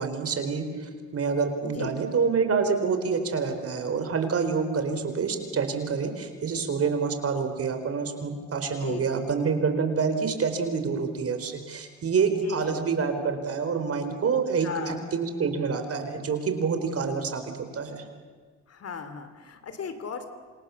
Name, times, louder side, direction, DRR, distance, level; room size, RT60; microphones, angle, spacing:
voice 1, 0.0-18.0, right 5 dB, 50° right, 7 dB, 4.3 m, -27 dB
voice 2, 1.6-2.0 3.5-3.6 4.9-5.0 6.5-6.7 8.8-9.2 12.4-12.8 14.6-15.0 18.7-20.3, left 6 dB, 55° left, 10 dB, 3.1 m, -36 dB
28.0 x 27.0 x 7.2 m, 1.5 s
cardioid pair, 90°, 30 cm